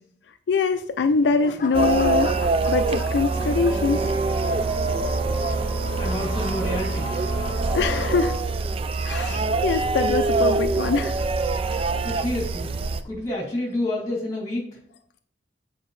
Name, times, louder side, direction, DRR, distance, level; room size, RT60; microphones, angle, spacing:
voice 1, 0.5-4.1 7.7-8.3 9.0-11.1 11.8-11.9, left 4 dB, 75° left, 8 dB, 0.4 m, -23 dB
sound 1, 0.7-4.3 4.9-5.2, left 3 dB, 50° left, 0.7 m, -37 dB
sound 2, 1.7-13.0, right 3 dB, 35° right, 0.3 m, -24 dB
sound 3, 3.3-8.3, equal, 15° right, 2.6 m, -35 dB
voice 2, 6.0-7.4 12.0-12.7 13.0-14.6, left 1 dB, 20° left, -2 dB, 2.8 m, -29 dB
7.4 x 4.6 x 3.2 m, 0.63 s
head